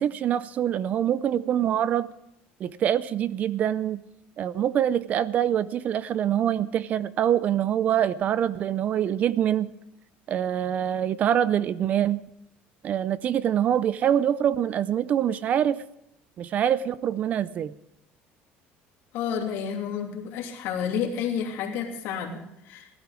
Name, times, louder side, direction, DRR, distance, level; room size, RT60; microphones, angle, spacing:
voice 1, 0.0-2.1 2.6-4.0 4.4-9.7 10.3-12.2 12.8-15.8 16.4-17.7, right 10 dB, 35° right, 17 dB, 0.4 m, -25 dB
voice 2, 19.1-22.9, left 7 dB, 65° left, 1 dB, 2.8 m, -30 dB
16.5 x 12.0 x 4.9 m, 0.82 s
cardioid pair, 160°, 4 cm